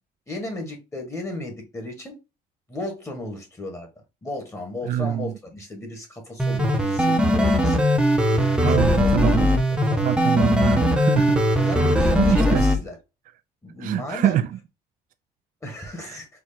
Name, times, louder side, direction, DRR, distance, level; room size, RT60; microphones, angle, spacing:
voice 1, 0.3-2.1 2.7-3.9 4.2-7.9 8.3-10.0 11.6-13.0 13.6-14.4 15.6-16.3, left 2 dB, 15° left, 1.5 m, -35 dB
voice 2, 4.9-5.3 8.6-9.5 10.0-12.6 13.8-14.5 16.0-16.2, right 11 dB, 55° right, 0.4 m, -25 dB
sound 1, 6.4-12.8, equal, 5° right, 0.8 m, -20 dB
4.6 x 2.3 x 4.1 m
cardioid pair, 110°, 17 cm